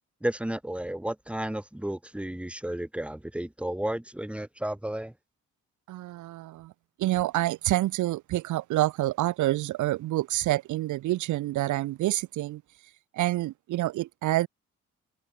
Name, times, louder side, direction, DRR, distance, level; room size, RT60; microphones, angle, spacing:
voice 1, 0.2-5.1, right 1 dB, 5° right, 1.9 m, -32 dB
voice 2, 5.9-6.7 7.0-12.6 13.1-14.5, right 16 dB, 75° right, 0.7 m, -27 dB
cardioid pair, 90°, 30 cm